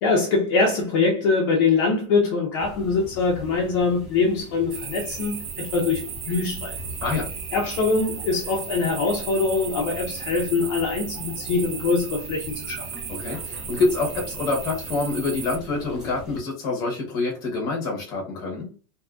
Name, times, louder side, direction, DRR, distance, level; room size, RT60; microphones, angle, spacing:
voice 1, 0.0-6.8 7.5-12.9, left 4 dB, 45° left, 0.6 m, -23 dB
sound 1, 2.6-16.4, left 2 dB, 5° right, 0.4 m, -42 dB
sound 2, 4.7-15.6, right 8 dB, 65° right, 0.5 m, -36 dB
voice 2, 13.1-18.7, left 3 dB, 25° left, 1.0 m, -26 dB
2.7 x 2.5 x 2.4 m
supercardioid pair, 175°, 16 cm